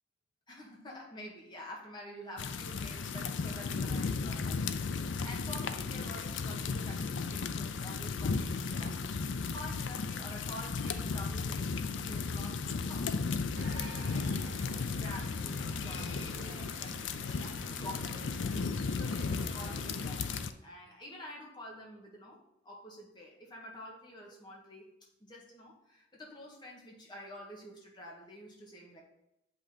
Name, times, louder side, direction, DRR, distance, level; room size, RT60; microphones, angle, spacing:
voice 1, 0.5-9.1 9.5-24.9 25.2-29.0, left 1 dB, 25° left, -2 dB, 1.8 m, -49 dB
sound 1, 2.4-20.5, left 4 dB, 90° left, 0.5 m, -35 dB
sound 2, 13.5-20.3, right 2 dB, 80° right, 1.2 m, -50 dB
7.6 x 5.6 x 4.3 m, 0.82 s
head